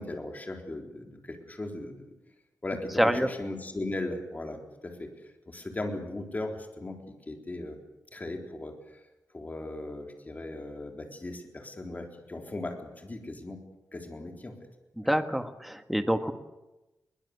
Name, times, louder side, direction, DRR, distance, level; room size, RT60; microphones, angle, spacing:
voice 1, 0.0-2.1 2.6-5.1 5.5-7.0 7.3-7.8 8.1-9.0 9.3-13.6 13.9-14.6, left 2 dB, 25° left, 3 dB, 3.9 m, -37 dB
voice 2, 3.0-3.3 15.1-16.3, equal, ahead, 7 dB, 1.5 m, -26 dB
22.5 x 20.5 x 8.4 m, 1.0 s
wide cardioid pair, 135°, 6 cm